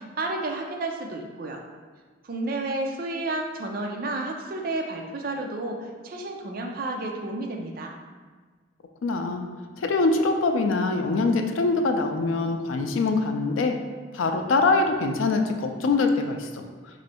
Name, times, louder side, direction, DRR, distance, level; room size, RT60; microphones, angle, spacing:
voice 1, 0.0-1.6 2.2-7.9, right 2 dB, 50° right, 2 dB, 0.4 m, -31 dB
voice 2, 9.0-9.4 9.8-13.7 14.1-16.6, left 3 dB, 85° left, 5 dB, 0.4 m, -23 dB
3.1 x 2.6 x 4.1 m, 1.4 s
head